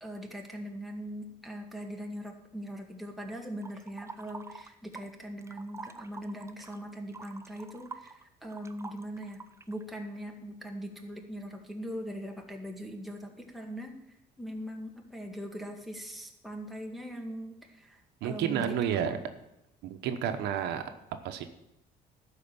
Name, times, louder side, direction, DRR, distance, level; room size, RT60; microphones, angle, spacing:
voice 1, 0.0-9.4 9.7-13.9 14.4-18.7 19.1-19.3, equal, ahead, 1 dB, 1.9 m, -41 dB
sound 1, 3.6-5.1 5.4-9.8, right 3 dB, 15° right, 0.7 m, -46 dB
voice 2, 18.2-19.2 19.8-20.8 21.2-21.4, right 9 dB, 80° right, 8 dB, 1.1 m, -30 dB
12.0 x 5.0 x 8.7 m, 0.88 s
cardioid pair, 110°, 17 cm